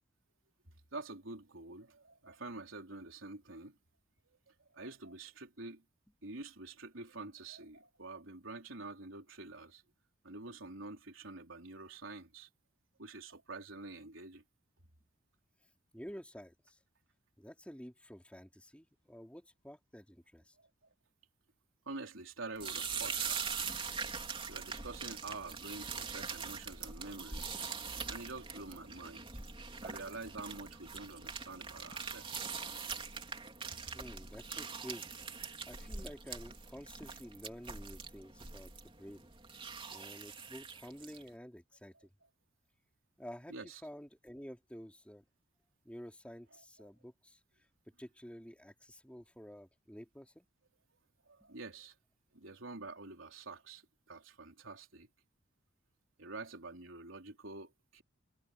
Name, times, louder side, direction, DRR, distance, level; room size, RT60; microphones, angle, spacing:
voice 1, 0.9-3.8 4.5-5.8 6.2-9.8 10.2-12.5 13.0-14.4 20.6-20.7 21.9-23.6 24.5-27.6 28.1-29.4 29.8-32.4 33.8-34.0 43.5-43.8 46.5-46.9 51.3-52.0 52.3-55.1 56.2-58.0, right 3 dB, 80° right, 3.8 m, -47 dB
voice 2, 15.9-16.8 17.4-20.5 33.9-35.1 35.6-39.3 39.9-41.9 43.2-45.2 45.8-47.4 48.0-50.5 51.4-51.5, equal, 5° left, 3.8 m, -50 dB
sound 1, 22.6-41.3, right 5 dB, 25° right, 3.4 m, -43 dB
head